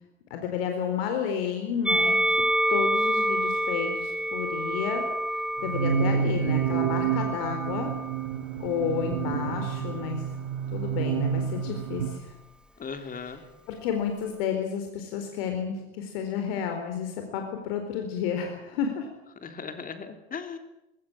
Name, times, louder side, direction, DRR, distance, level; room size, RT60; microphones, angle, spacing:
voice 1, 0.3-2.4 2.7-5.0 5.6-7.9 8.6-10.2 10.7-12.3 13.2-13.4 13.7-19.1, left 7 dB, 70° left, 4 dB, 4.3 m, -31 dB
Musical instrument, 1.8-8.3 9.1-10.1, right 1 dB, 5° right, 1.0 m, -28 dB
sound 1, 5.6-12.2, right 8 dB, 75° right, 1.7 m, -29 dB
voice 2, 12.8-13.4 19.4-20.6, left 5 dB, 30° left, 7 dB, 3.2 m, -37 dB
21.0 x 18.5 x 9.0 m, 0.89 s
hypercardioid pair, 90°, 30 cm